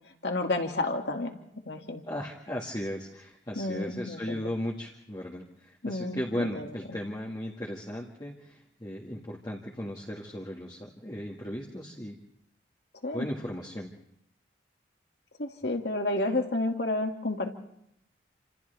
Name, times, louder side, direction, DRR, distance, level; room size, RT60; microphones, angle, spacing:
voice 1, 0.2-1.3 1.7-2.0 3.6-4.4 5.8-6.7 13.0-13.3 15.4-17.5, left 2 dB, 65° left, 3 dB, 2.2 m, -30 dB
voice 2, 2.1-12.2 13.1-13.9, equal, 25° left, -4 dB, 1.9 m, -36 dB
29.0 x 27.0 x 3.5 m, 0.75 s
head